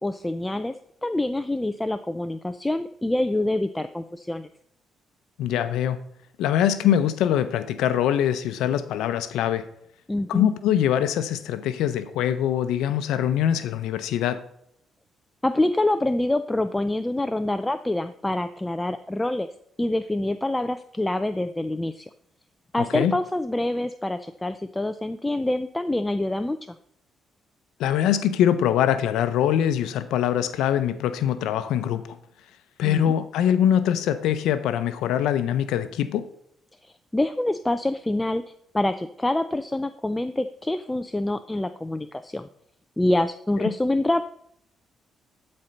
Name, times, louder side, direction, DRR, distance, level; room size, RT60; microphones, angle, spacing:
voice 1, 0.0-0.8 1.0-4.5 10.1-10.4 15.4-19.5 19.8-22.1 22.7-26.8 32.8-33.1 36.8-38.4 38.7-42.5 43.0-44.2, left 1 dB, 10° left, 10 dB, 0.4 m, -26 dB
voice 2, 5.4-6.0 6.4-9.6 10.3-14.4 22.8-23.1 27.8-32.2 32.8-36.2 43.6-43.7, left 10 dB, 90° left, 12 dB, 0.6 m, -23 dB
12.0 x 4.3 x 5.2 m, 0.71 s
cardioid pair, 90°, 0 cm